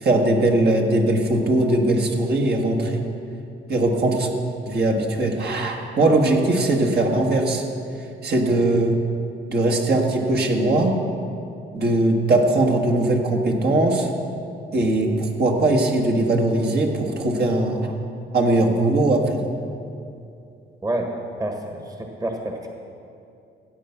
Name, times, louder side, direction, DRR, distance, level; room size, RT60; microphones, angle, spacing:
voice 1, 0.0-3.0 3.7-4.3 4.7-7.6 8.2-8.9 9.5-10.9 11.7-14.1 14.7-17.8 18.3-19.4, right 2 dB, 55° right, 1 dB, 1.8 m, -20 dB
voice 2, 21.4-22.7, right 1 dB, 20° right, 3 dB, 1.4 m, -29 dB
15.5 x 7.9 x 6.0 m, 2.6 s
cardioid pair, 90°, 20 cm